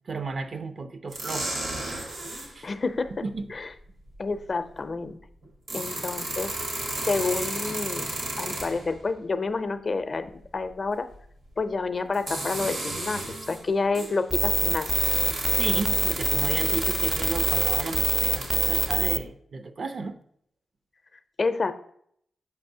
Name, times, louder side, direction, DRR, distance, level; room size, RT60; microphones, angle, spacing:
voice 1, 0.1-1.5 2.5-2.7 3.2-3.5 15.5-20.2, right 4 dB, 60° right, 10 dB, 0.5 m, -33 dB
sound 1, 1.1-2.5 4.1-4.2 5.4-9.0 11.1-11.2 12.1-13.6 13.9-18.9, right 2 dB, 85° right, 1.4 m, -33 dB
voice 2, 2.6-3.2 3.5-3.7 4.2-5.2 5.7-6.5 7.1-8.1 8.4-11.1 11.6-15.0 21.4-21.7, left 4 dB, 50° left, 10 dB, 0.5 m, -29 dB
sound 2, 14.3-19.2, equal, 5° right, 0.4 m, -25 dB
6.8 x 5.2 x 2.7 m, 0.67 s
supercardioid pair, 45°, 0 cm